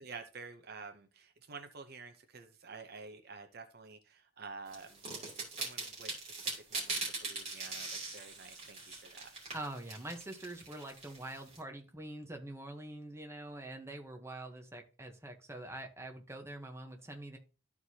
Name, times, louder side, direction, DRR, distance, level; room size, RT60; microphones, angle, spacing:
voice 1, 0.0-9.3, right 4 dB, 45° right, 7 dB, 0.7 m, -50 dB
sound 1, 4.7-11.6, right 3 dB, 30° right, 3.1 m, -41 dB
voice 2, 9.5-17.4, right 1 dB, 10° right, 3 dB, 1.0 m, -45 dB
13.0 x 4.6 x 2.8 m, 0.33 s
head